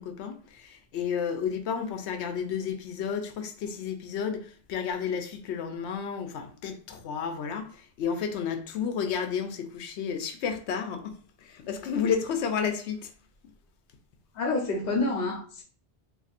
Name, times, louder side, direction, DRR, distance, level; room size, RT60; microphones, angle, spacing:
voice 1, 0.0-11.2 11.4-13.1, left 7 dB, 90° left, 0.9 m, -31 dB
voice 2, 14.3-15.6, left 3 dB, 65° left, 0.9 m, -28 dB
4.1 x 2.6 x 2.4 m
omnidirectional pair, 1.1 m